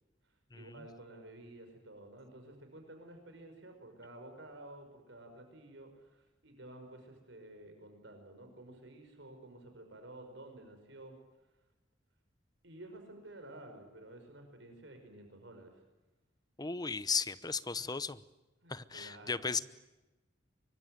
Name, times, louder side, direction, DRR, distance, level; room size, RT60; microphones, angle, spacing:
voice 1, 0.2-11.2 12.6-15.8 17.8-17.9 18.6-19.6, right 1 dB, 75° right, 5 dB, 5.5 m, -52 dB
voice 2, 16.6-18.2 18.7-19.6, left 5 dB, 20° left, 15 dB, 0.8 m, -35 dB
25.0 x 22.5 x 9.3 m, 1.1 s
head